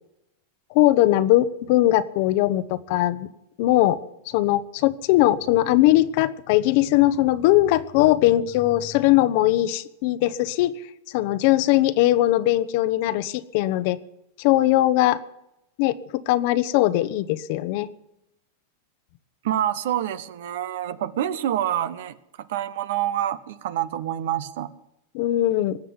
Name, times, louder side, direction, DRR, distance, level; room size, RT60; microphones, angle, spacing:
voice 1, 0.7-3.3 3.6-4.0 4.3-10.7 11.1-14.0 14.4-15.2 15.8-16.0 16.3-17.9 25.1-25.8, left 15 dB, 55° left, 15 dB, 0.9 m, -20 dB
voice 2, 19.4-24.7, right 11 dB, 70° right, 15 dB, 1.1 m, -27 dB
19.5 x 7.5 x 9.7 m, 0.87 s
supercardioid pair, 140°, 0 cm